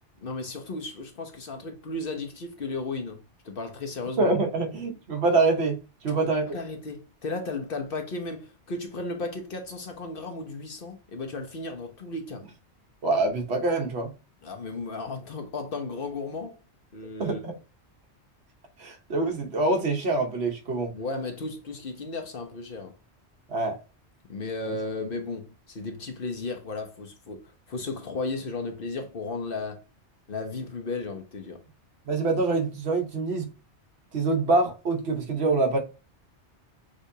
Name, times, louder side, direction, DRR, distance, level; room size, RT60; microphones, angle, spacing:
voice 1, 0.2-4.4 6.1-12.4 14.4-16.6 16.9-17.4 20.9-22.9 24.3-29.8 30.3-31.6, left 3 dB, 55° left, 1.0 m, -35 dB
voice 2, 4.2-5.8 6.0-6.5 13.0-14.1 17.2-17.5 18.8-20.9 23.5-23.8 24.7-24.8 32.1-33.5 34.1-35.8, right 3 dB, 65° right, 1.2 m, -25 dB
6.4 x 2.6 x 2.7 m
omnidirectional pair, 1.2 m